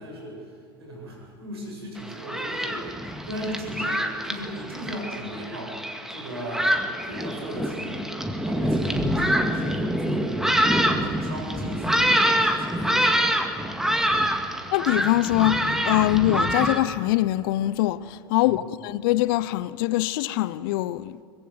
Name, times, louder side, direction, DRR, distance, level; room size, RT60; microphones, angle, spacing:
voice 1, 0.0-6.7 7.0-10.6 11.0-14.3 18.4-18.7, equal, 80° right, 7.8 m, -37 dB
Thunderstorm, 2.0-16.8, equal, 5° right, 2.0 m, -25 dB
voice 2, 14.7-21.2, left 17 dB, 60° left, 0.7 m, -23 dB
23.0 x 21.0 x 7.9 m
figure-of-eight pair, 80°, 13 cm